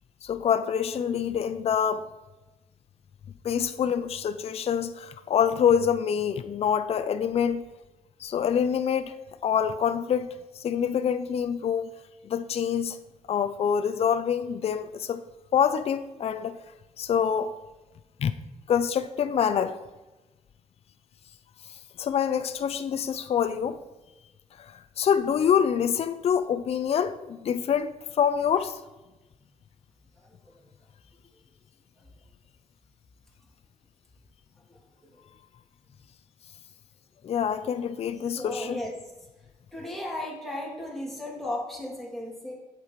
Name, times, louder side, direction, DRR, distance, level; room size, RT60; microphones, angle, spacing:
voice 1, 0.2-2.1 3.4-7.6 8.2-9.1 9.4-10.3 10.6-11.9 12.2-13.0 13.3-15.2 15.5-16.6 17.0-17.5 18.2-18.3 18.7-19.8 22.0-23.8 24.6-28.8 37.2-38.8, left 8 dB, 50° left, 10 dB, 0.4 m, -26 dB
voice 2, 38.3-38.9 39.7-42.5, left 1 dB, ahead, -4 dB, 2.4 m, -35 dB
8.2 x 7.4 x 3.1 m, 1.1 s
cardioid pair, 115°, 13 cm